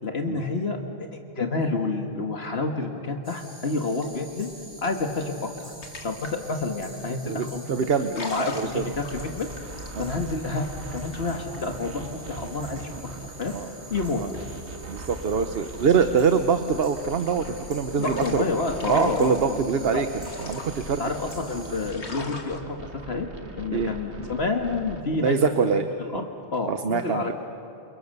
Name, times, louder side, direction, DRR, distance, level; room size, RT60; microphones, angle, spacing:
voice 1, 0.0-4.5 4.8-5.7 6.0-7.9 8.1-10.7 10.9-12.9 13.2-13.5 13.9-14.2 18.0-19.6 19.9-20.0 21.0-23.3 23.5-26.2 26.5-27.3, left 3 dB, 70° left, 3 dB, 2.0 m, -29 dB
sound 1, 3.2-21.9, right 1 dB, 40° right, 4.0 m, -47 dB
sound 2, 3.9-15.1 15.4-22.6, left 2 dB, 85° left, 2.4 m, -43 dB
voice 2, 7.3-8.8 9.9-10.1 13.5-13.7 14.2-14.3 14.9-18.4 18.9-20.1 20.4-21.0 23.7-23.9 25.2-25.9 26.1-26.2 26.6-27.3, right 6 dB, 65° right, 8 dB, 1.1 m, -24 dB
sound 3, 8.6-25.0, right 3 dB, 90° right, 2.1 m, -41 dB
29.5 x 28.0 x 6.7 m, 2.7 s
omnidirectional pair, 1.1 m